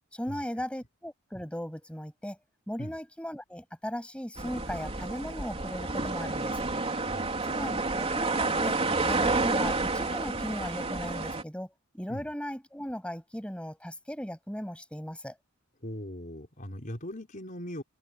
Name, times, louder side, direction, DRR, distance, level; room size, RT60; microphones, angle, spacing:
voice 1, 0.1-2.4 2.7-6.6 7.5-8.8 9.0-15.3, equal, 5° left, 7.7 m, -37 dB
sound 1, 4.4-11.4, right 3 dB, 30° right, 3.5 m, -30 dB
voice 2, 7.1-7.6 12.1-12.3 15.8-17.8, equal, 40° left, 5.1 m, -40 dB
head